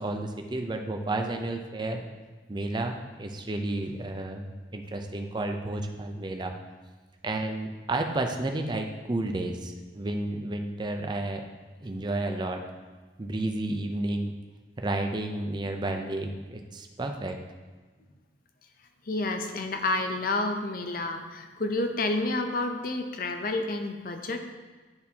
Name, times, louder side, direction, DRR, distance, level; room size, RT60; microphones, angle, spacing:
voice 1, 0.0-2.0 2.5-6.5 7.2-11.4 11.8-12.6 13.2-14.4 14.8-17.4, right 2 dB, 25° right, 4 dB, 0.5 m, -31 dB
voice 2, 19.1-24.5, left 2 dB, 50° left, 6 dB, 0.6 m, -30 dB
10.5 x 4.2 x 2.8 m, 1.4 s
head